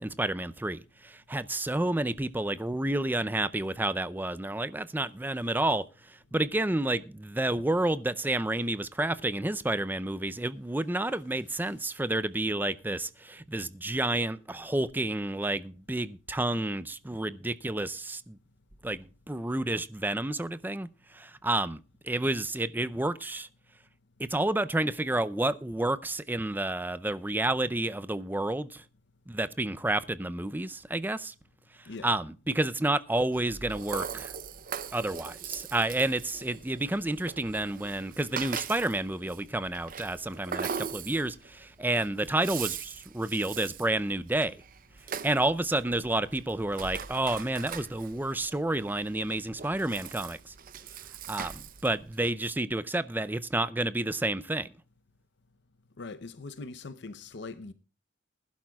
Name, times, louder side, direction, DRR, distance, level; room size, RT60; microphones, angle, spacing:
voice 1, 0.0-18.4 18.8-23.5 24.2-28.8 29.3-31.3 31.8-34.3 34.9-44.6 45.2-50.5 51.3-54.7, right 2 dB, 10° right, 0.5 m, -30 dB
Rattle (instrument), 33.3-52.3, right 7 dB, 45° right, 0.7 m, -41 dB
voice 2, 56.0-57.7, left 3 dB, 65° left, 0.7 m, -41 dB
21.0 x 11.5 x 2.3 m
head